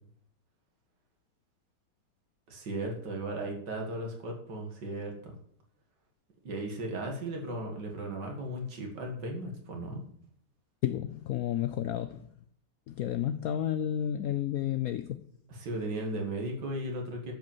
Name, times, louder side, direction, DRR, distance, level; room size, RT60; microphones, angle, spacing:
voice 1, 2.5-5.3 6.4-10.0 15.5-17.3, right 1 dB, 75° right, 2.5 m, -36 dB
voice 2, 10.8-12.3 12.9-15.2, left 11 dB, 70° left, 0.9 m, -31 dB
12.0 x 5.3 x 7.3 m
omnidirectional pair, 1.9 m